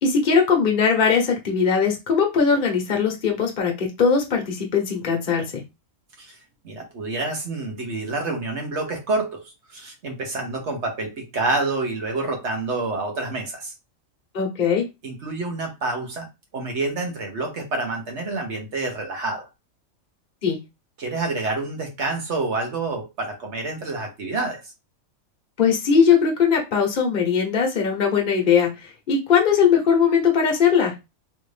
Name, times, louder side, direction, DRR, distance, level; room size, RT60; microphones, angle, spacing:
voice 1, 0.0-5.6 14.3-14.8 20.4-20.6 25.6-30.9, left 6 dB, 45° left, 1.0 m, -20 dB
voice 2, 6.6-13.7 15.0-16.3 16.5-19.5 21.0-24.7, right 3 dB, 60° right, 1.3 m, -28 dB
3.3 x 2.6 x 3.2 m
omnidirectional pair, 1.3 m